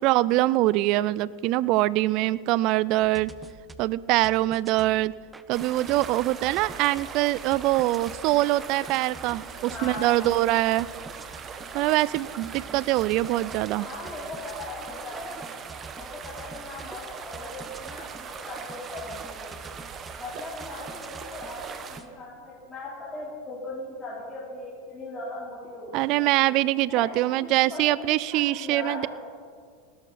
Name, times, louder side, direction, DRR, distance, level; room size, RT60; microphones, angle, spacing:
voice 1, 0.0-3.3 3.8-5.1 5.5-10.9 11.7-13.9 25.9-29.1, right 17 dB, 50° right, 20 dB, 0.4 m, -23 dB
sound 1, 3.0-22.2, right 3 dB, 15° right, 0.7 m, -48 dB
sound 2, 5.5-22.0, right 6 dB, 30° right, 1.1 m, -40 dB
voice 2, 9.7-10.4 13.8-15.4 15.9-19.5 20.2-26.3 26.8-29.1, left 2 dB, 20° left, -8 dB, 3.8 m, -39 dB
18.5 x 11.5 x 4.2 m, 2.1 s
hypercardioid pair, 100°, 0 cm